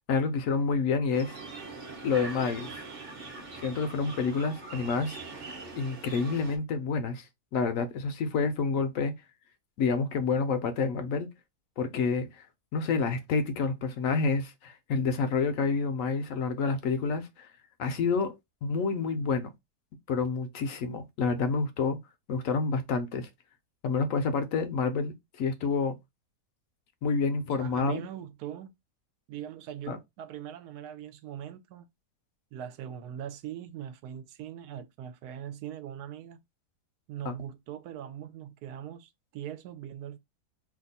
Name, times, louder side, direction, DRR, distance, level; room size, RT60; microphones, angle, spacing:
voice 1, 0.1-1.4 2.0-2.8 3.6-5.2 5.7-7.2 7.5-9.1 9.8-11.3 11.8-12.4 12.7-17.5 17.8-18.3 18.6-19.5 20.1-22.0 22.3-23.3 23.8-26.0 27.0-28.0 29.9-30.0 37.3-37.4, left 4 dB, 65° left, 0.8 m, -28 dB
sound 1, 1.1-6.6, right 3 dB, 40° right, 0.7 m, -42 dB
voice 2, 27.6-28.7 29.3-31.9 32.5-36.4 37.1-40.2, right 10 dB, 75° right, 1.1 m, -41 dB
2.8 x 2.3 x 3.9 m
omnidirectional pair, 1.7 m